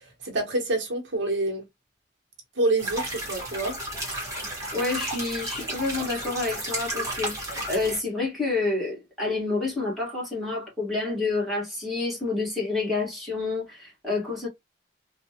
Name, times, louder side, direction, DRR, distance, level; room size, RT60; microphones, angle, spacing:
voice 1, 0.2-1.6 2.6-3.8, right 2 dB, 75° right, 1.0 m, -27 dB
sound 1, 2.8-8.0, right 1 dB, 20° right, 1.3 m, -33 dB
voice 2, 4.7-14.5, left 3 dB, ahead, 1.6 m, -28 dB
3.2 x 2.3 x 2.8 m
head